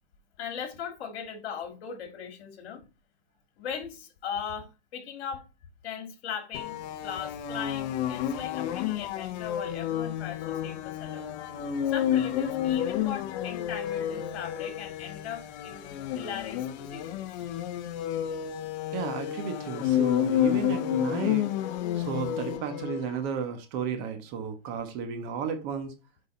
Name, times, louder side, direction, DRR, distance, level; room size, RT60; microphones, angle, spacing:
voice 1, 0.4-2.8 3.6-5.4 5.8-11.3 11.9-17.3, left 7 dB, 60° left, 2.2 m, -39 dB
sound 1, 6.5-23.1, left 10 dB, 40° left, 0.8 m, -30 dB
voice 2, 18.9-21.5 21.9-25.9, right 6 dB, 40° right, 1.3 m, -33 dB
6.1 x 5.3 x 4.1 m
hypercardioid pair, 130°, 34 cm